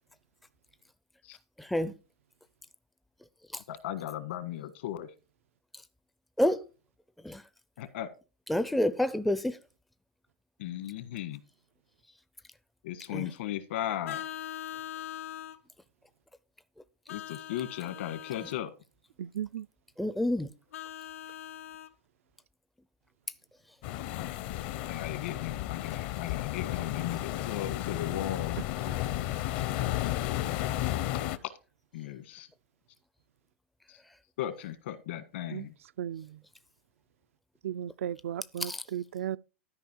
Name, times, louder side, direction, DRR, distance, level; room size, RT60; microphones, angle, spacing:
voice 1, 1.6-1.9 3.5-3.6 6.4-6.6 7.2-7.4 8.5-9.6 13.1-13.3 20.0-20.5 38.7-38.8, left 1 dB, ahead, 0.4 m, -28 dB
voice 2, 3.7-5.1 7.8-8.1 10.6-11.4 12.8-14.2 17.1-18.7 24.8-28.6 31.9-32.5 34.4-35.7, left 12 dB, 65° left, 1.5 m, -36 dB
Vehicle horn car horn honking, 14.0-15.6 17.1-18.6 20.7-21.9, left 11 dB, 85° left, 1.1 m, -41 dB
voice 3, 19.2-19.7 28.6-28.7 35.5-35.7 36.0-36.4 37.6-39.4, right 10 dB, 90° right, 0.4 m, -35 dB
sound 1, 23.8-31.4, left 14 dB, 40° left, 0.7 m, -33 dB
12.5 x 5.2 x 4.5 m
supercardioid pair, 160°, 7 cm